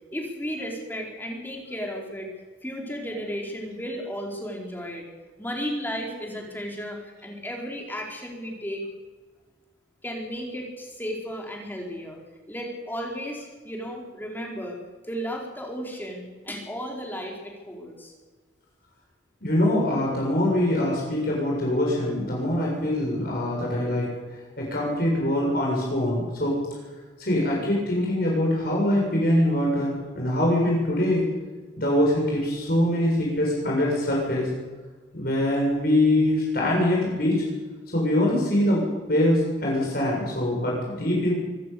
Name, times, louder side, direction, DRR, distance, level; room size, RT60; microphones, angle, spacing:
voice 1, 0.1-2.3 2.6-5.1 5.4-8.8 10.0-12.2 12.5-14.8 15.1-18.1, equal, 10° left, 0 dB, 4.5 m, -34 dB
voice 2, 19.4-24.1 24.6-26.5 27.2-31.3 31.8-34.5 35.1-37.4 37.9-38.8 39.1-41.3, left 1 dB, 55° left, -3 dB, 7.2 m, -23 dB
25.0 x 14.0 x 8.6 m, 1.3 s
head